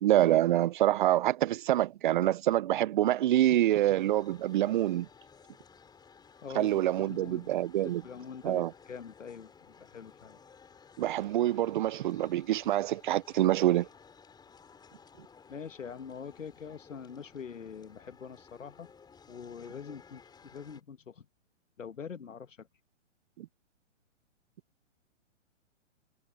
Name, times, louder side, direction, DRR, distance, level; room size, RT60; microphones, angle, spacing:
voice 1, 0.0-5.1 6.5-8.0 8.4-8.7 11.0-13.9 23.4-23.5, right 13 dB, 45° right, 0.5 m, -26 dB
sound 1, 3.6-20.8, left 6 dB, 10° left, 4.9 m, -57 dB
voice 2, 6.4-6.8 7.0-7.5 7.8-9.5 9.8-10.4 15.5-18.9 19.3-21.2 21.8-22.7, left 6 dB, 85° left, 1.4 m, -44 dB
hypercardioid pair, 130°, 37 cm